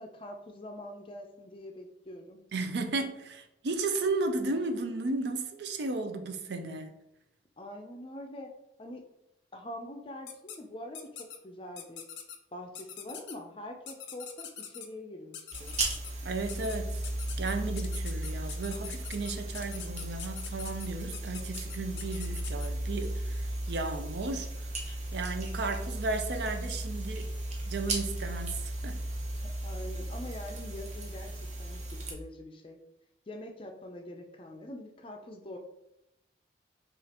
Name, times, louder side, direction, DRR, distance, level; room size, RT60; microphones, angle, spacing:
voice 1, 0.0-2.4 7.6-8.5 8.8-9.0 9.5-11.0 11.4-12.0 12.5-15.8 29.6-32.8 33.3-35.6, left 1 dB, 30° left, 0.4 m, -44 dB
voice 2, 2.5-7.0 16.2-17.1 17.4-24.5 25.1-27.3 27.7-29.0, right 3 dB, 70° right, 0.5 m, -34 dB
sound 1, 10.3-10.6 10.9-11.4 11.8-12.4 12.7-13.3 13.9-14.9 15.3-16.1 16.5-16.8 17.0-22.7, left 8 dB, 85° left, 0.5 m, -43 dB
sound 2, 15.5-32.1, right 1 dB, 40° right, 0.7 m, -36 dB
5.0 x 2.4 x 2.9 m
head